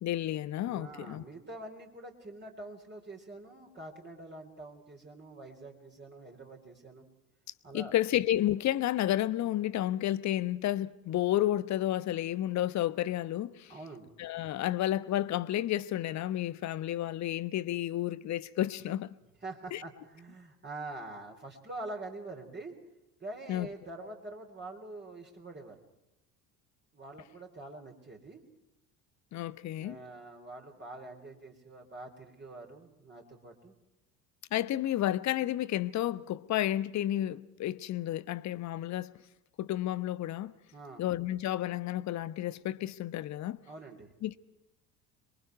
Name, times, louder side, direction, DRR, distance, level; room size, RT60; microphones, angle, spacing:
voice 1, 0.0-1.2 7.7-13.7 14.2-19.2 19.7-19.8 23.5-23.7 29.3-30.0 34.5-39.1 39.6-40.5 41.0-43.6 44.2-44.4, left 13 dB, 35° left, 1.0 m, -31 dB
voice 2, 0.6-7.1 7.6-7.9 13.7-14.1 19.4-22.8 23.2-25.8 26.9-28.4 29.8-33.7 40.7-41.0 43.7-44.1, right 2 dB, 25° right, 3.9 m, -45 dB
27.0 x 23.0 x 4.7 m
figure-of-eight pair, 60°, 46 cm